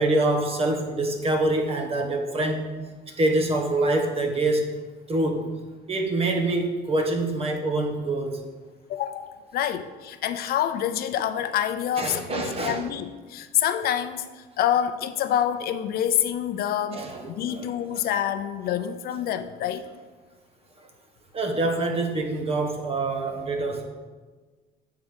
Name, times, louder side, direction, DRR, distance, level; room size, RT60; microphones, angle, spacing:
voice 1, 0.0-2.8 3.1-4.7 5.1-5.5 5.9-8.4 12.0-12.8 16.9-17.9 20.8-20.9 21.3-23.8, right 2 dB, 35° right, 3 dB, 1.2 m, -25 dB
voice 2, 8.9-17.1 17.4-19.9, left 10 dB, 65° left, 11 dB, 0.5 m, -27 dB
8.3 x 3.8 x 6.2 m, 1.3 s
cardioid pair, 110°, 17 cm